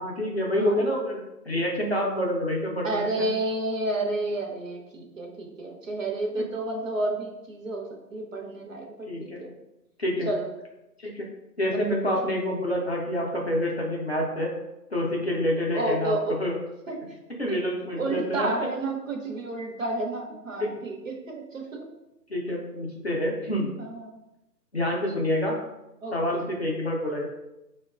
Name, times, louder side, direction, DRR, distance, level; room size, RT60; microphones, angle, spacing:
voice 1, 0.0-3.3 9.1-9.4 10.0-10.3 11.0-11.2 11.6-14.5 14.9-16.6 17.4-18.7 22.3-23.6 24.7-25.6 26.1-27.2, equal, 40° left, -2 dB, 0.5 m, -27 dB
voice 2, 2.8-9.5 10.3-10.5 15.7-16.4 16.9-17.2 17.5-17.6 17.9-21.0 21.3-21.9 23.6-24.2 26.0-26.4, right 2 dB, 50° right, 1 dB, 0.7 m, -31 dB
4.4 x 2.2 x 2.3 m, 0.94 s
figure-of-eight pair, 155°, 50 cm